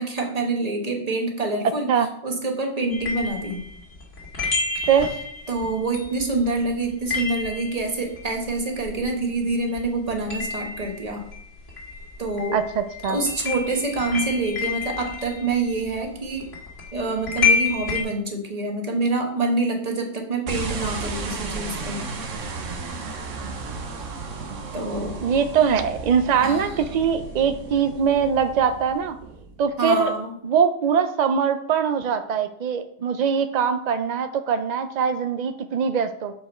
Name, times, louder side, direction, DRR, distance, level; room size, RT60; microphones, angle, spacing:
voice 1, 0.0-1.9 2.2-3.6 4.8-4.9 5.5-11.2 12.2-12.6 13.1-16.5 16.9-22.0 24.7-25.2 26.4-26.7 29.8-30.3, right 2 dB, 35° right, 2 dB, 1.2 m, -26 dB
sound 1, 2.9-9.5 9.8-18.0, left 4 dB, 75° left, 2.2 m, -29 dB
voice 2, 12.5-13.2 25.2-29.2 29.6-30.1 30.4-36.3, right 7 dB, 75° right, 9 dB, 0.4 m, -22 dB
sound 2, 20.5-29.9, right 4 dB, 90° right, 1.3 m, -34 dB
6.9 x 5.2 x 4.3 m, 0.70 s
omnidirectional pair, 1.3 m